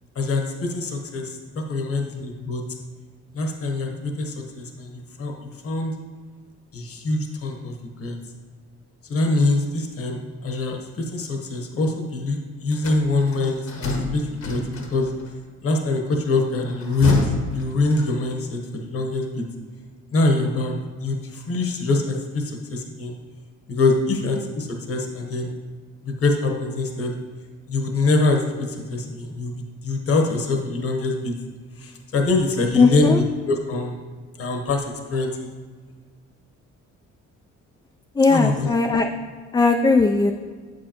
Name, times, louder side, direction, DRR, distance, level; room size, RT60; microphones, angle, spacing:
voice 1, 0.1-2.6 3.3-5.9 6.7-8.2 9.1-14.6 14.9-15.1 15.6-19.4 20.1-20.7 21.0-23.1 23.7-25.5 26.0-27.1 27.7-29.5 29.8-31.3 31.8-33.9 34.4-35.5 38.3-38.7, left 3 dB, 50° left, 3 dB, 1.1 m, -24 dB
sound 1, 12.7-15.3 16.6-18.4, left 2 dB, 70° left, 1.3 m, -29 dB
voice 2, 32.7-33.2 38.2-39.1 39.5-40.3, left 3 dB, 15° left, 4 dB, 0.3 m, -18 dB
8.2 x 7.7 x 2.9 m, 1.5 s
cardioid pair, 90°, 30 cm